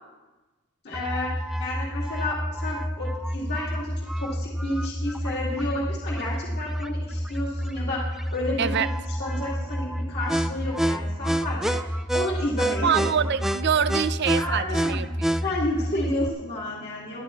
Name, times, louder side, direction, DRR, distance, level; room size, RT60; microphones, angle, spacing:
voice 1, 0.8-1.3 1.6-8.8 9.2-13.1 14.4-15.0 15.4-17.2, left 1 dB, 55° left, -5 dB, 2.3 m, -31 dB
sound 1, 0.9-16.3, equal, ahead, 0.3 m, -28 dB
voice 2, 12.8-15.4, right 7 dB, 55° right, 14 dB, 0.5 m, -25 dB
20.5 x 11.5 x 3.1 m, 1.2 s
head